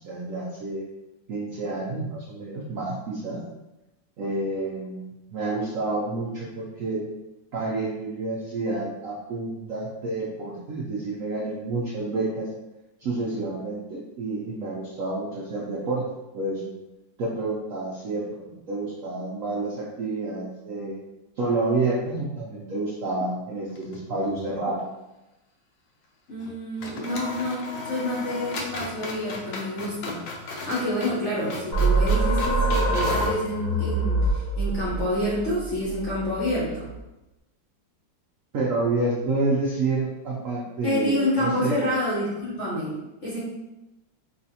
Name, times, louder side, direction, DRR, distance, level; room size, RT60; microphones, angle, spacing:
voice 1, 0.0-0.8 1.3-3.4 4.2-7.0 7.5-12.5 13.0-16.0 16.3-16.7 17.2-21.0 21.4-24.8 38.5-41.8, right 2 dB, 70° right, -5 dB, 0.7 m, -29 dB
sound 1, 23.7-24.5 24.8-24.9 26.4-26.5 26.8-33.4, left 3 dB, 80° left, 1.4 m, -36 dB
voice 2, 26.3-30.2 30.5-36.9 40.8-43.4, left 1 dB, 50° left, -7 dB, 0.8 m, -28 dB
sound 2, 31.7-37.0, right 2 dB, 25° left, 0.5 m, -25 dB
5.0 x 2.4 x 2.7 m, 0.97 s
omnidirectional pair, 2.1 m